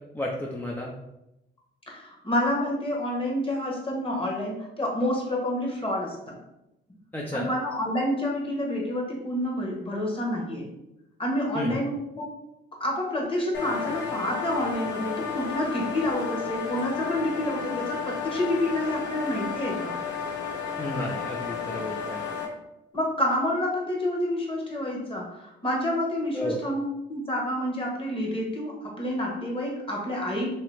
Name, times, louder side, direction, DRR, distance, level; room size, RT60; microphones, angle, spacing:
voice 1, 0.1-0.9 7.1-7.5 11.6-11.8 20.8-22.2 26.3-26.6, left 1 dB, 10° left, -3 dB, 0.4 m, -32 dB
voice 2, 1.9-6.3 7.3-10.7 11.2-12.3 12.8-20.0 22.9-26.8 27.1-30.5, left 1 dB, 25° left, -1 dB, 1.2 m, -28 dB
sound 1, 13.5-22.5, left 6 dB, 65° left, 0.9 m, -32 dB
3.0 x 2.8 x 3.3 m, 0.88 s
cardioid pair, 90°, 20 cm